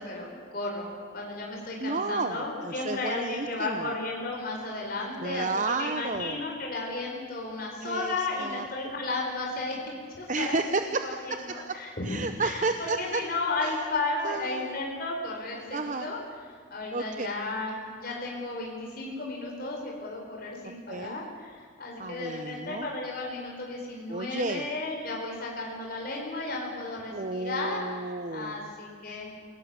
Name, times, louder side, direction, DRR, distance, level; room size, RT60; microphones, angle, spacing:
voice 1, 0.0-9.8 10.2-10.5 11.0-12.1 12.4-16.2 16.7-27.8 28.3-29.3, left 2 dB, 45° left, -1 dB, 4.5 m, -34 dB
voice 2, 1.8-3.9 5.2-6.4 7.8-8.7 10.3-11.8 12.0-13.2 13.6-13.9 14.2-14.8 15.7-16.1 16.9-17.3 20.9-21.2 22.0-22.9 24.1-24.7 27.1-28.7, right 3 dB, 40° right, 8 dB, 0.8 m, -32 dB
27.0 x 17.5 x 6.9 m, 2.1 s
head